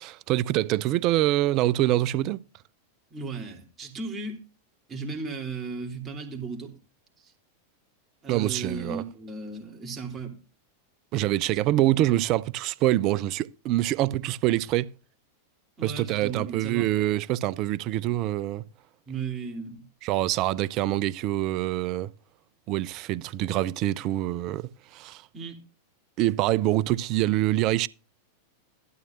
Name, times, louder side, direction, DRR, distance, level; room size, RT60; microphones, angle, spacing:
voice 1, 0.0-2.4 8.3-9.0 11.1-14.9 15.8-18.6 20.0-22.1 22.7-25.2 26.2-27.9, right 15 dB, 40° right, 0.6 m, -25 dB
voice 2, 3.1-4.4 4.9-6.7 7.2-7.3 8.2-10.4 15.8-16.9 19.1-19.8 25.3-25.6, right 4 dB, 20° right, 3.3 m, -35 dB
15.5 x 12.5 x 2.6 m
figure-of-eight pair, 90°, 0 cm